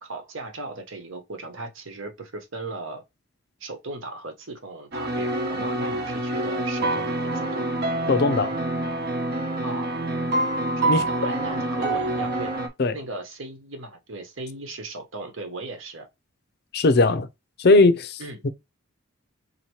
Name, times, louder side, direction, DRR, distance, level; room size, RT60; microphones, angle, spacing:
voice 1, 0.0-3.0 3.6-7.7 9.6-9.9 10.8-12.5 12.9-16.1 18.2-18.4, right 2 dB, 70° right, 1.1 m, -37 dB
sound 1, 4.9-12.7, right 1 dB, 50° right, 0.8 m, -26 dB
voice 2, 8.1-8.5 10.9-11.0 12.8-13.0 16.7-17.3 17.6-18.2 18.4-18.5, left 3 dB, 50° left, 0.5 m, -18 dB
4.1 x 2.8 x 3.1 m
head